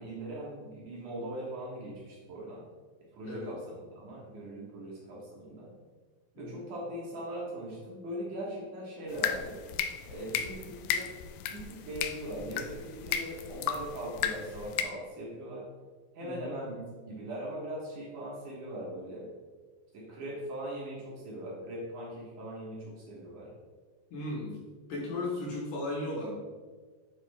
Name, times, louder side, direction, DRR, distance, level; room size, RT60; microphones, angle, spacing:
voice 1, 0.0-2.6 3.1-5.7 6.3-9.5 10.1-11.1 11.5-15.7 16.1-19.3 19.9-23.5, right 1 dB, 60° right, -5 dB, 2.5 m, -40 dB
voice 2, 3.2-3.6 6.4-6.7 16.2-16.6 24.1-24.6 24.9-26.3, left 2 dB, 65° left, -2 dB, 2.7 m, -36 dB
sound 1, 9.1-14.8, left 9 dB, 90° left, 2.6 m, -35 dB
8.3 x 4.9 x 3.5 m, 1.4 s
omnidirectional pair, 4.5 m